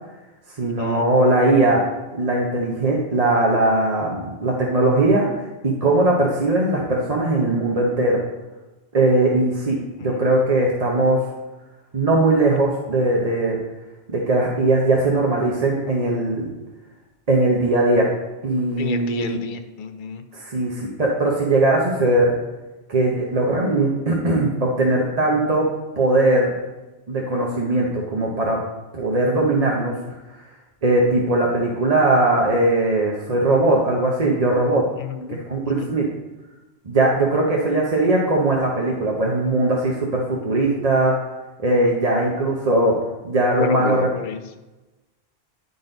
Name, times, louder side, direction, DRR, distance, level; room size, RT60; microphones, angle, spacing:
voice 1, 0.6-1.8 2.1-8.2 8.9-11.2 11.9-13.6 14.1-16.5 17.3-18.1 18.4-19.4 20.3-22.3 22.9-25.7 26.0-26.5 27.1-28.6 28.9-29.9 30.8-34.8 35.3-36.1 36.9-41.1 41.6-42.9 43.2-44.1, right 2 dB, 40° right, -2 dB, 0.9 m, -20 dB
voice 2, 18.8-20.2 35.0-35.4 35.7-36.0 43.6-44.4, left 6 dB, 55° left, 7 dB, 0.7 m, -29 dB
10.0 x 4.0 x 3.9 m, 1.1 s
omnidirectional pair, 1.1 m